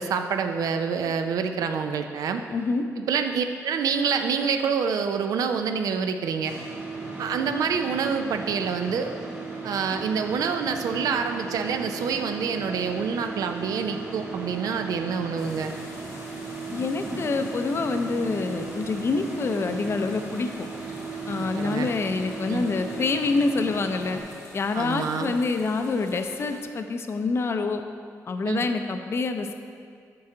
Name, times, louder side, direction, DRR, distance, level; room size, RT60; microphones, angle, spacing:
voice 1, 0.0-2.4 3.0-6.6 7.2-9.2 9.6-15.7 21.6-21.9 22.5-22.7 24.7-25.3 28.4-28.7, right 6 dB, 85° right, 7 dB, 0.5 m, -27 dB
voice 2, 2.5-2.8 16.7-20.5 21.3-24.2 24.5-27.8 28.3-29.5, left 3 dB, 45° left, 7 dB, 0.5 m, -26 dB
sound 1, 6.4-24.2, right 4 dB, 35° right, 1.2 m, -36 dB
sound 2, 15.4-26.6, left 2 dB, 90° left, 1.3 m, -48 dB
8.6 x 4.7 x 3.8 m, 2.2 s
cardioid pair, 90°, 6 cm